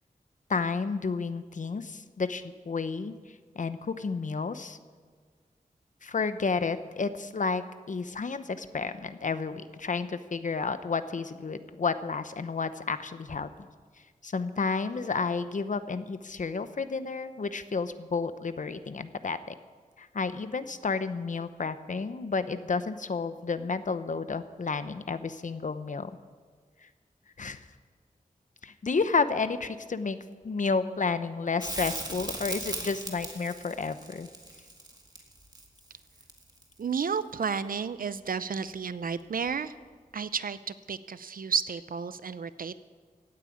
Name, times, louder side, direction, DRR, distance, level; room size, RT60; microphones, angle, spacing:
voice 1, 0.5-3.1 3.5-4.8 6.0-13.5 14.2-19.5 20.0-26.1 27.4-27.6 28.6-30.2 30.4-34.3, left 4 dB, 60° left, 12 dB, 0.8 m, -31 dB
Crackle, 31.6-36.7 39.5-39.6, right 2 dB, 30° right, 2.0 m, -38 dB
voice 2, 36.8-39.7 40.1-42.8, right 6 dB, 75° right, 14 dB, 0.6 m, -32 dB
16.5 x 9.1 x 8.6 m, 1.5 s
wide cardioid pair, 100°, 15 cm